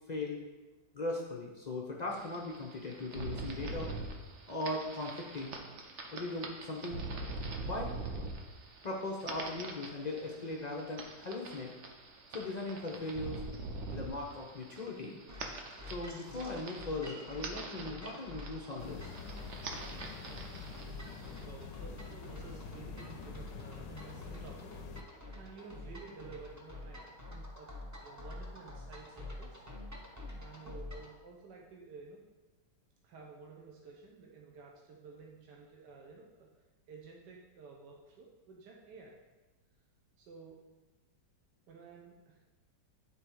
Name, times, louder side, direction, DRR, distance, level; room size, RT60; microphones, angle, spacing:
voice 1, 0.1-0.4 0.9-3.9 4.5-5.6 6.1-7.1 7.6-7.9 8.8-11.7 12.3-13.4 13.9-15.2 15.9-19.1, left 2 dB, 60° left, -1 dB, 0.4 m, -39 dB
sound 1, 2.1-21.4, right 3 dB, 55° right, 0.9 m, -44 dB
sound 2, 15.3-31.2, left 1 dB, 20° right, 0.4 m, -48 dB
sound 3, 18.8-25.0, left 6 dB, 85° left, 1.3 m, -47 dB
voice 2, 21.5-27.0 27.3-27.7 28.0-29.6 30.3-32.2 33.0-36.5 36.9-39.2 40.2-40.5 41.7-42.4, right 4 dB, 80° right, -1 dB, 1.4 m, -52 dB
9.8 x 3.8 x 4.6 m, 1.2 s
omnidirectional pair, 1.9 m